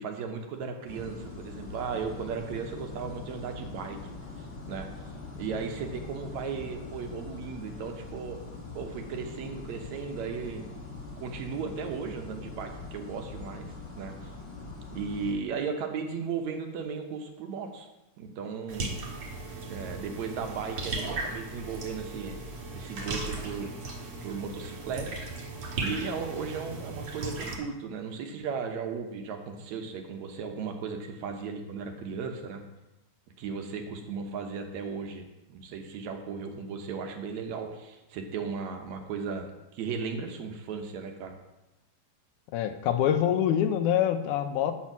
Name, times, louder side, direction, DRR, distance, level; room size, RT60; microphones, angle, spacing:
voice 1, 0.0-4.0 4.4-4.9 5.4-8.4 8.7-10.7 11.2-13.7 14.0-14.3 14.9-17.9 18.2-18.9 19.7-22.4 22.7-23.7 24.2-25.3 25.7-32.6 33.4-41.4, right 5 dB, 70° right, 4 dB, 2.2 m, -36 dB
sound 1, 0.9-15.3, left 3 dB, 35° left, 1.0 m, -42 dB
sound 2, 18.7-27.6, right 2 dB, 50° right, 2.1 m, -37 dB
voice 2, 42.5-44.7, left 10 dB, 85° left, 7 dB, 2.2 m, -25 dB
8.7 x 7.2 x 6.0 m, 0.98 s
omnidirectional pair, 3.5 m